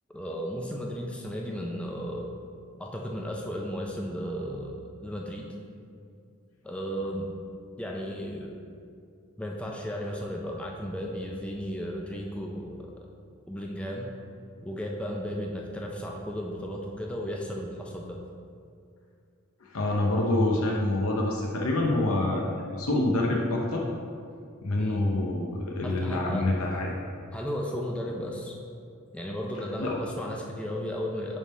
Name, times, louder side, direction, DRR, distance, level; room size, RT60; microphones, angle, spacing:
voice 1, 0.1-2.3 2.8-5.5 6.6-7.3 7.8-8.5 9.4-13.1 13.5-14.1 14.6-18.2 24.8-25.0 25.8-26.5 27.3-28.6 29.1-31.4, equal, 5° left, -1 dB, 0.5 m, -34 dB
voice 2, 19.6-23.8 24.6-26.9 29.8-30.0, left 2 dB, 75° left, -1 dB, 0.7 m, -26 dB
10.5 x 3.6 x 4.2 m, 2.3 s
head